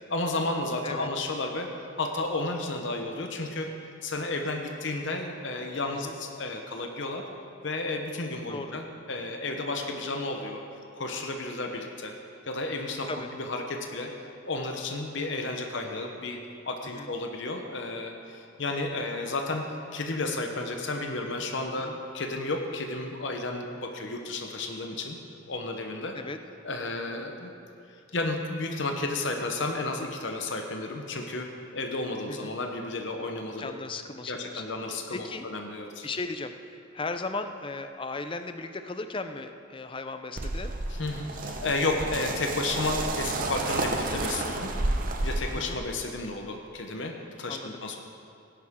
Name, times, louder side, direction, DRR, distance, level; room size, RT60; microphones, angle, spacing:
voice 1, 0.1-1.7 2.0-3.7 4.0-7.2 7.6-10.6 10.9-12.1 12.5-13.1 13.4-14.1 14.5-16.4 16.6-25.2 25.5-26.2 26.6-27.5 27.9-33.7 34.3-36.1 40.9-44.7 45.2-48.0, left 2 dB, 60° left, 3 dB, 0.9 m, -32 dB
voice 2, 8.5-8.8 13.1-13.3 16.8-17.1 21.8-22.0 26.1-26.4 32.3-32.5 33.6-35.5 36.0-40.7 45.5-45.8 47.5-48.0, left 3 dB, 25° left, 8 dB, 0.5 m, -37 dB
sound 1, 40.4-45.8, right 2 dB, 40° right, 0.8 m, -31 dB
17.0 x 10.5 x 3.7 m, 2.5 s
head